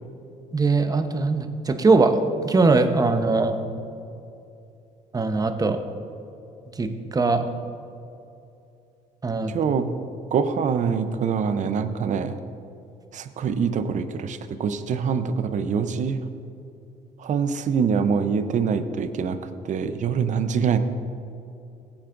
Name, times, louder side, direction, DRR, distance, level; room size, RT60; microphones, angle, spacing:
voice 1, 0.5-2.2 2.4-3.6 5.1-5.8 6.8-7.4 9.2-9.5, right 3 dB, 25° right, 7 dB, 0.9 m, -21 dB
voice 2, 9.5-9.9 10.3-12.4 13.1-16.2 17.2-19.4 19.6-20.8, right 6 dB, 50° right, 10 dB, 0.7 m, -24 dB
16.0 x 8.8 x 2.6 m, 2.7 s
supercardioid pair, 75°, 16 cm